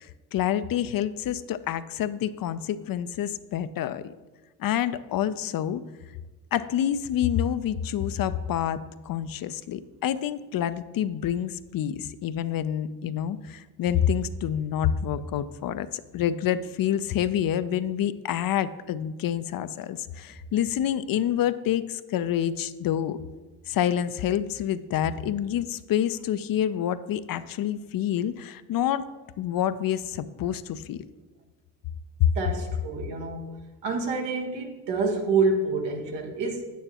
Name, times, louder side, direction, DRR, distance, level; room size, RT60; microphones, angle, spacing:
voice 1, 0.0-4.1 4.6-5.8 6.5-23.2 23.7-29.1 29.4-31.0 32.2-32.3, left 10 dB, 55° left, 14 dB, 0.5 m, -27 dB
voice 2, 32.3-33.5 33.8-36.6, right 4 dB, 85° right, 1 dB, 1.5 m, -27 dB
9.2 x 8.5 x 2.9 m, 1.2 s
supercardioid pair, 70°, 43 cm